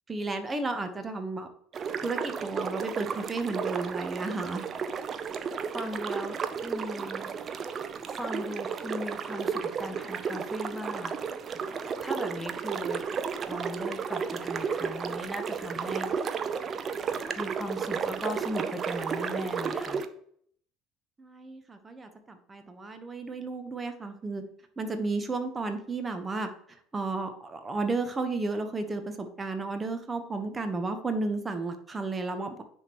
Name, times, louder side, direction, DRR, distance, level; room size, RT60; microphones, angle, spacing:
voice 1, 0.1-1.5 2.0-4.6 21.2-24.4 24.8-26.5 26.9-32.6, right 3 dB, 25° right, 8 dB, 1.1 m, -33 dB
sound 1, 1.7-20.1, right 6 dB, 40° right, 0.5 m, -33 dB
voice 2, 5.7-7.6 8.1-11.1 11.7-13.0 13.5-16.5 17.4-20.0, left 1 dB, ahead, 5 dB, 1.1 m, -38 dB
9.7 x 3.7 x 3.1 m, 0.63 s
figure-of-eight pair, 60°, 0 cm